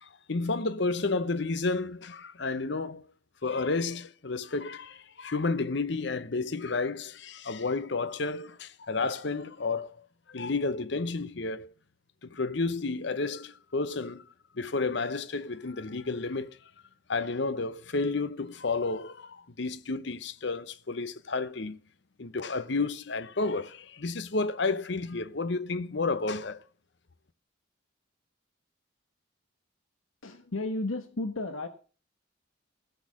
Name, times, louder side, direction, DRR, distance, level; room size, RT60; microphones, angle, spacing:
voice 1, 0.0-3.1 3.4-9.9 10.3-11.7 12.2-14.2 14.5-16.6 17.1-21.8 22.2-26.6, left 3 dB, 55° left, 0.8 m, -31 dB
voice 2, 30.2-31.7, left 2 dB, 80° left, 1.2 m, -33 dB
14.5 x 6.4 x 6.3 m
head